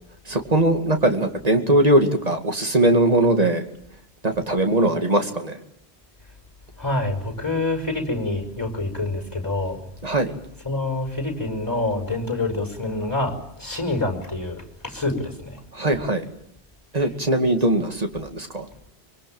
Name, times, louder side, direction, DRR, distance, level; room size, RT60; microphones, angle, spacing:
voice 1, 0.3-3.6 4.2-5.6 10.0-10.3 15.7-16.2 16.9-18.7, right 1 dB, 40° right, 5 dB, 2.5 m, -20 dB
voice 2, 6.8-9.8 10.7-15.6, left 2 dB, 20° left, 5 dB, 5.4 m, -26 dB
25.0 x 23.5 x 8.8 m, 0.71 s
omnidirectional pair, 1.0 m